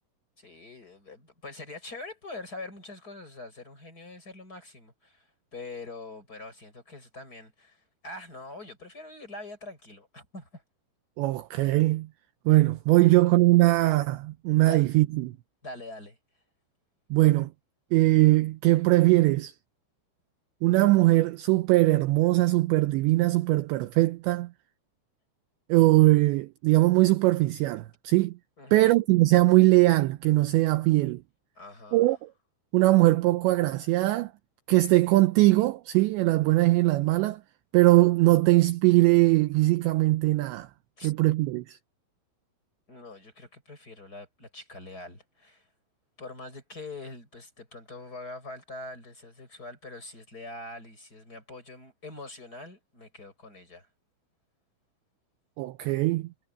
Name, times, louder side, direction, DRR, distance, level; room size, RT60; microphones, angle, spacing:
voice 1, 0.4-10.6 14.7-14.8 15.6-16.2 28.6-28.9 31.6-32.1 41.0-41.1 42.9-45.7 46.2-53.9, left 2 dB, 20° left, 6.2 m, -43 dB
voice 2, 11.2-12.1 12.5-15.3 17.1-17.5 17.9-19.5 20.6-24.5 25.7-28.3 28.7-31.2 31.9-32.3 32.7-34.3 34.7-37.4 37.7-40.7 41.0-41.8 55.6-56.3, right 19 dB, 80° right, 2.7 m, -21 dB
omnidirectional pair, 5.8 m